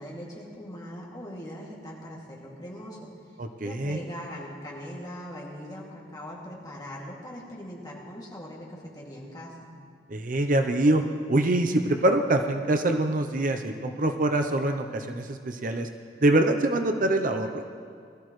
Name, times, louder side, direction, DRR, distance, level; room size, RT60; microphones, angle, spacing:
voice 1, 0.0-9.7, equal, 20° left, -4 dB, 2.3 m, -41 dB
voice 2, 3.4-4.0 10.1-11.0 11.3-15.9 16.2-17.6, right 1 dB, 45° right, 6 dB, 0.6 m, -24 dB
21.0 x 13.5 x 3.2 m, 2.2 s
head